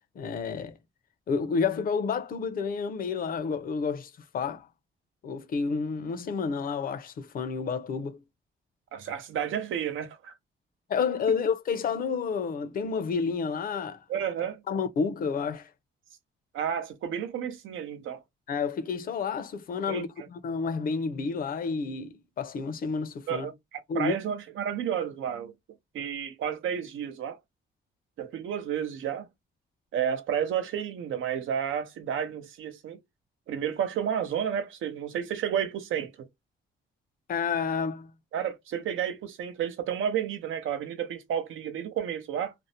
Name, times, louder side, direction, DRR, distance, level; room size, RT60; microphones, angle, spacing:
voice 1, 0.2-0.7 1.3-4.7 5.2-8.2 10.9-14.0 14.7-15.7 18.5-23.5 23.9-24.2 37.3-38.1, left 5 dB, 45° left, 0.5 m, -30 dB
voice 2, 8.9-10.3 11.3-11.4 14.1-14.6 16.5-18.2 19.9-20.3 23.3-25.5 25.9-27.4 28.2-29.3 29.9-33.0 33.5-36.3 38.3-42.5, right 9 dB, 80° right, 0.7 m, -31 dB
2.5 x 2.0 x 2.7 m
cardioid pair, 160°, 20 cm